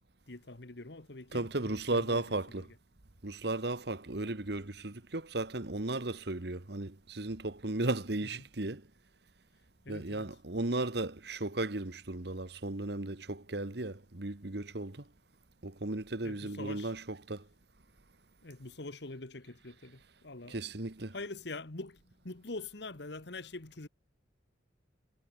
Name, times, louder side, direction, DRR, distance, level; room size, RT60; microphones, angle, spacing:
voice 1, 0.3-2.7 8.3-8.4 9.8-10.3 16.2-16.9 18.4-20.6 21.1-23.9, left 2 dB, 65° left, 1.4 m, -44 dB
voice 2, 1.3-2.7 3.2-8.9 9.9-15.0 15.6-17.5 20.5-21.1, right 2 dB, 60° right, 1.4 m, -35 dB
head